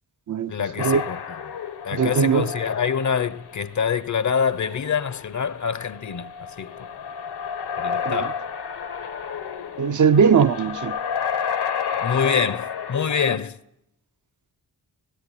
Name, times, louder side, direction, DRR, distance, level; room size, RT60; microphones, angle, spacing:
voice 1, 0.5-1.4 1.8-6.9 7.8-8.4 12.0-13.5, left 6 dB, 50° left, 0.8 m, -26 dB
sound 1, 0.8-13.4, left 7 dB, 85° left, 1.7 m, -31 dB
voice 2, 2.0-2.5 8.1-8.2 9.8-10.9, right 6 dB, 50° right, 0.7 m, -19 dB
18.5 x 17.0 x 9.9 m
wide cardioid pair, 150°, 39 cm